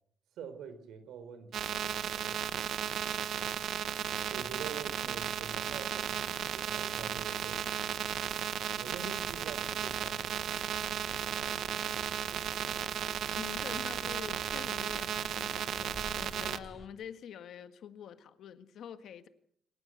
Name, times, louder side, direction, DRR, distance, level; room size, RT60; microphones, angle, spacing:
voice 1, 0.4-2.4 3.4-3.7 4.3-7.7 8.7-10.3 11.4-11.5, right 6 dB, 80° right, 4.6 m, -46 dB
sound 1, 1.5-16.6, right 9 dB, 65° right, 1.0 m, -35 dB
sound 2, 9.2-16.9, equal, ahead, 2.5 m, -51 dB
voice 2, 13.3-19.3, left 8 dB, 65° left, 1.7 m, -46 dB
26.0 x 15.5 x 8.0 m
cardioid pair, 140°, 0 cm